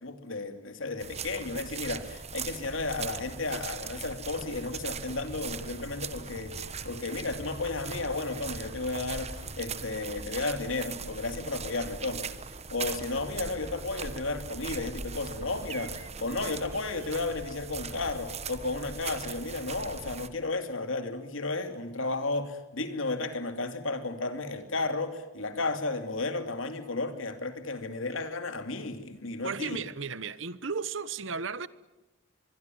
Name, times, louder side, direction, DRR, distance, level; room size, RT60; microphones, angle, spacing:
voice 1, 0.0-12.3 12.7-29.8, left 3 dB, 80° left, 2.8 m, -33 dB
sound 1, 1.0-20.3, right 5 dB, 35° right, 1.4 m, -40 dB
sound 2, 4.8-10.0, equal, 60° left, 6.2 m, -50 dB
voice 2, 29.4-31.7, right 5 dB, 65° right, 1.1 m, -34 dB
24.0 x 23.0 x 9.3 m
head